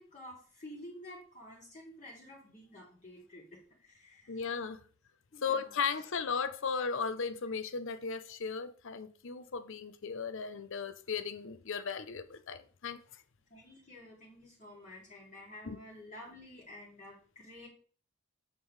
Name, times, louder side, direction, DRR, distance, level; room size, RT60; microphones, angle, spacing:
voice 1, 0.0-4.4 5.3-5.7 13.5-17.7, left 1 dB, 35° left, 2.7 m, -51 dB
voice 2, 4.3-4.8 5.4-13.0 15.6-15.8, left 5 dB, 60° left, 0.7 m, -36 dB
8.2 x 7.5 x 3.2 m
head